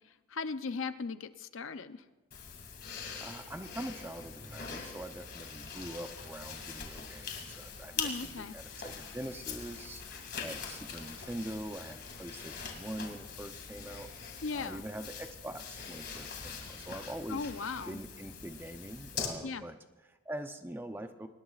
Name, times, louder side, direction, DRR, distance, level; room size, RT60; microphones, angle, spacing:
voice 1, 0.3-2.0 8.0-8.5 14.4-14.8 17.3-17.9 19.4-19.6, left 4 dB, 65° left, 11 dB, 0.6 m, -37 dB
sound 1, 2.3-19.3, left 6 dB, 50° left, 2.3 m, -43 dB
voice 2, 2.9-17.5 17.8-21.3, right 1 dB, 10° right, 7 dB, 0.7 m, -44 dB
24.5 x 19.5 x 2.5 m, 1.2 s
head